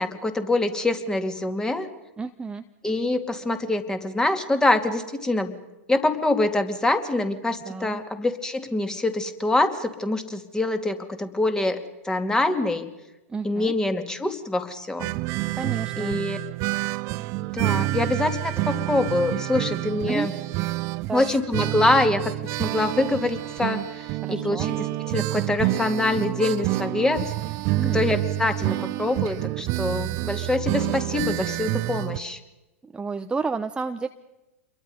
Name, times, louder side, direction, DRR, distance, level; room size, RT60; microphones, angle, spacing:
voice 1, 0.0-1.9 2.8-5.6 5.9-12.9 13.4-15.1 16.0-16.4 17.5-20.3 21.1-22.2 22.6-27.2 27.9-32.4, left 2 dB, 10° left, 7 dB, 2.6 m, -25 dB
voice 2, 2.2-2.6 7.6-8.0 13.3-13.7 15.6-16.2 20.1-20.3 21.1-21.3 24.2-24.7 27.8-28.0 32.8-34.1, right 4 dB, 10° right, 7 dB, 1.0 m, -31 dB
sound 1, 15.0-32.2, right 19 dB, 45° right, 0.8 m, -28 dB
28.5 x 22.5 x 5.3 m, 1.0 s
hypercardioid pair, 105°, 8 cm